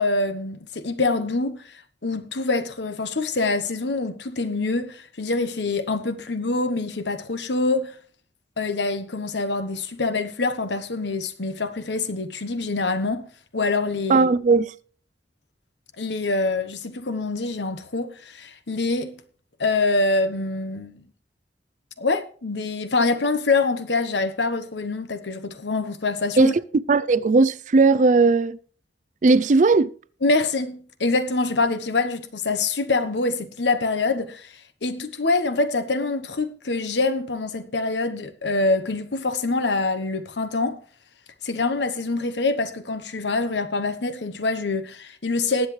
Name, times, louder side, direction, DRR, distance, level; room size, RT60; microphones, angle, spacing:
voice 1, 0.0-1.6 2.0-7.9 8.6-13.3 13.5-14.3 16.0-19.2 19.6-21.1 22.0-26.5 30.2-34.5 34.8-40.8 41.4-45.7, left 3 dB, 80° left, 1.1 m, -25 dB
voice 2, 14.1-14.7 26.4-28.6 29.2-29.9, right 3 dB, 45° right, 0.4 m, -17 dB
20.0 x 8.0 x 3.2 m
head